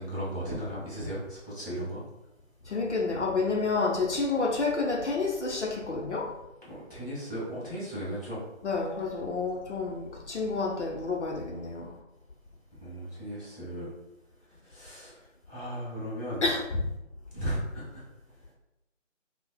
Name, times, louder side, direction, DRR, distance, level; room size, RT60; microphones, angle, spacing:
voice 1, 0.0-2.0 6.7-8.4 12.8-13.9 14.6-15.2 15.5-16.4 17.3-18.0, equal, ahead, -31 dB, 0.9 m, -36 dB
voice 2, 2.7-6.4 8.6-11.9 16.4-16.9, left 3 dB, 65° left, -1 dB, 0.6 m, -29 dB
3.8 x 2.1 x 2.3 m, 0.93 s
figure-of-eight pair, 165°, 38 cm